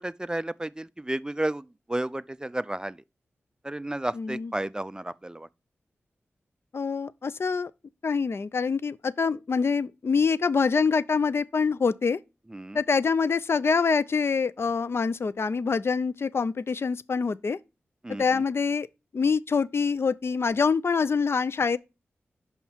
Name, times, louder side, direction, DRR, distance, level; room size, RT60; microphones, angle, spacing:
voice 1, 0.0-3.0 3.6-5.5 12.5-12.8 18.0-18.4, right 1 dB, 15° right, 0.3 m, -32 dB
voice 2, 4.1-4.5 6.7-7.7 8.0-12.2 12.7-17.6 18.2-18.9 19.1-21.8, left 5 dB, 60° left, 0.4 m, -25 dB
5.6 x 5.4 x 4.5 m
cardioid pair, 40°, 5 cm